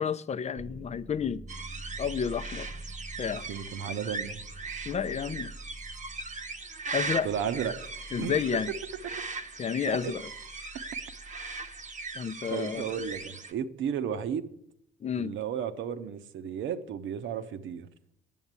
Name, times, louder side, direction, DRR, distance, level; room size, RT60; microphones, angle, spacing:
voice 1, 0.0-1.4 2.0-2.7 3.2-3.4 4.9-5.5 6.9-7.3 8.1-8.7 9.6-10.3 12.1-12.9 15.0-15.4, left 7 dB, 35° left, 16 dB, 0.5 m, -30 dB
sound 1, 0.6-13.3, right 1 dB, 20° right, 0.4 m, -47 dB
sound 2, 1.5-13.5, right 4 dB, 35° right, 0.9 m, -39 dB
voice 2, 3.5-4.4 7.2-7.8 8.2-8.4 9.9-10.1 12.5-14.5 15.2-17.9, right 8 dB, 75° right, 9 dB, 0.9 m, -33 dB
9.2 x 7.1 x 8.1 m, 0.74 s
cardioid pair, 90°, 20 cm